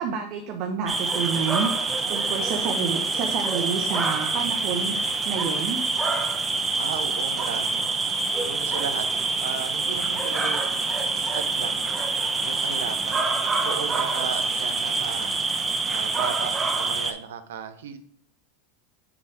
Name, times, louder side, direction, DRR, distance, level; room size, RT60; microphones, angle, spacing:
voice 1, 0.0-1.7 2.1-5.0 5.2-5.8, right 6 dB, 55° right, 4 dB, 0.8 m, -29 dB
sound 1, 0.9-17.1, right 3 dB, 20° right, 0.8 m, -26 dB
sound 2, 4.0-8.4 9.8-15.2, equal, 40° right, 2.2 m, -49 dB
voice 2, 6.8-7.9 8.4-9.1 9.4-10.7 11.3-11.8 12.4-13.3 13.6-15.4 15.9-18.0, right 7 dB, 85° right, 9 dB, 0.6 m, -35 dB
7.2 x 3.4 x 4.7 m, 0.62 s
hypercardioid pair, 110°, 0 cm